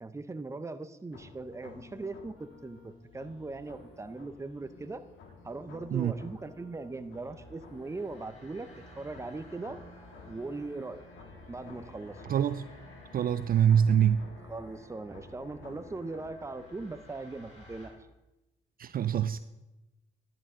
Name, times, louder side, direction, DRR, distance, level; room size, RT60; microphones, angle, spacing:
voice 1, 0.0-5.0 5.4-9.8 10.3-11.0 11.5-12.3 14.5-18.0, right 3 dB, 15° right, 0.7 m, -40 dB
sound 1, 1.1-17.1, left 3 dB, 80° left, 1.6 m, -53 dB
sound 2, 7.2-17.9, left 1 dB, 35° left, 3.9 m, -54 dB
voice 2, 12.3-12.7 13.1-14.3 18.8-19.4, right 9 dB, 45° right, 0.4 m, -25 dB
11.0 x 10.5 x 3.7 m
cardioid pair, 90°, 20 cm